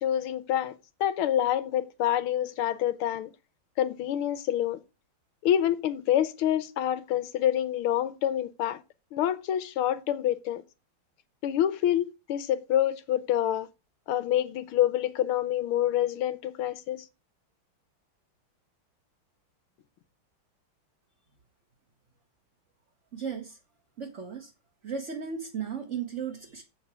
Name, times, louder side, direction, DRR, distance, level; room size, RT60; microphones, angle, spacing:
voice 1, 0.0-3.3 3.8-4.8 5.4-8.8 9.1-10.6 11.4-13.7 14.1-17.1, left 11 dB, 85° left, 1.7 m, -27 dB
voice 2, 23.1-23.6 24.0-24.5 24.8-26.6, right 6 dB, 40° right, 1.4 m, -35 dB
8.1 x 6.9 x 6.0 m
omnidirectional pair, 2.3 m